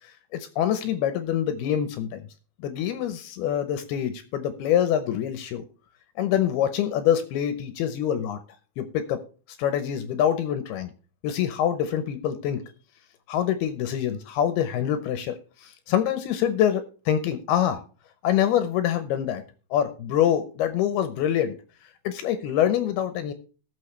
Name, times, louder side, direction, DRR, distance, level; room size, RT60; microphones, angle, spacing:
voice 1, 0.3-2.3 2.6-5.6 6.2-8.4 8.8-9.2 9.6-10.9 11.2-12.6 13.3-17.8 18.2-19.4 19.7-21.6 22.0-23.3, left 10 dB, 80° left, 10 dB, 2.4 m, -25 dB
19.5 x 6.5 x 3.2 m, 0.35 s
omnidirectional pair, 5.5 m